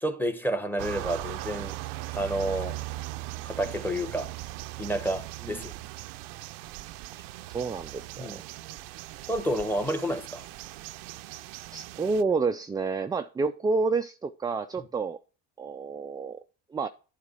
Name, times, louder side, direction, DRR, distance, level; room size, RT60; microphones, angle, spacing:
voice 1, 0.0-1.8 2.1-2.8 3.4-4.3 4.8-5.7 8.2-8.4 9.3-10.5 14.8-14.9, right 1 dB, 5° left, 1.1 m, -30 dB
sound 1, 0.8-12.2, right 17 dB, 80° right, 0.5 m, -39 dB
voice 2, 7.5-8.4 11.7-15.2 15.6-16.4 16.7-16.9, right 4 dB, 10° right, 0.3 m, -29 dB
8.9 x 3.7 x 6.8 m
supercardioid pair, 100°, 34 cm